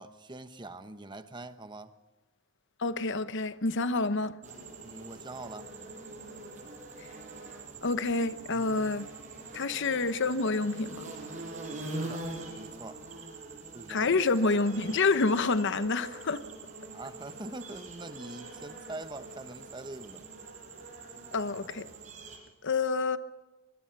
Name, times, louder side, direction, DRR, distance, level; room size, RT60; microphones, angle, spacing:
voice 1, 0.0-1.9 4.8-5.7 11.8-12.3 12.6-13.0 13.7-14.2 16.9-20.2, right 2 dB, 20° right, 1.1 m, -44 dB
voice 2, 2.8-4.4 7.8-9.1 9.5-11.1 13.9-16.4 21.3-21.9 22.6-23.2, left 3 dB, 60° left, 0.9 m, -28 dB
sound 1, 4.4-22.4, right 2 dB, 35° right, 6.5 m, -43 dB
24.5 x 20.5 x 6.0 m
head